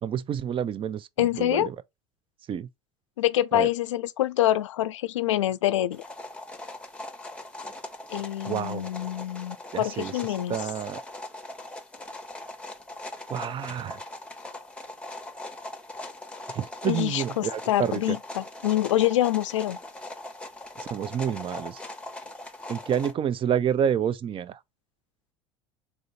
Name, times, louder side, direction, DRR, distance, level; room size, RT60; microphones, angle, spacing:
voice 1, 0.0-1.8 2.5-2.7 3.5-3.7 8.5-8.9 9.7-10.1 10.5-11.0 13.3-14.0 16.5-18.2 20.9-21.8 22.7-24.6, right 9 dB, 35° right, 0.5 m, -29 dB
voice 2, 1.2-1.7 3.2-6.0 8.1-10.6 16.9-19.8, left 13 dB, 80° left, 0.4 m, -26 dB
sound 1, 5.9-23.1, left 2 dB, 5° left, 0.9 m, -40 dB
3.7 x 3.5 x 4.0 m
hypercardioid pair, 70°, 16 cm